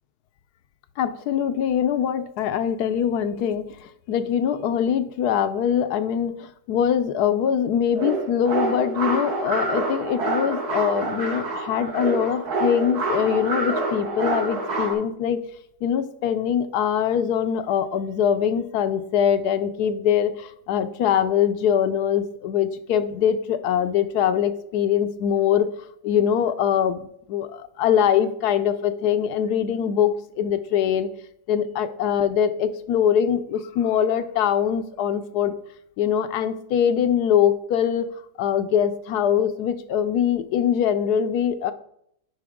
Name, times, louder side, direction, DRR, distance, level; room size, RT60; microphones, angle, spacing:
voice 1, 1.0-15.4 15.8-25.7 26.0-31.1 31.5-35.5 36.0-38.1 38.4-41.7, left 8 dB, 75° left, 11 dB, 1.1 m, -23 dB
sound 1, 7.9-14.9, right 2 dB, 70° right, 1.9 m, -27 dB
9.8 x 5.5 x 3.6 m, 0.73 s
omnidirectional pair, 1.8 m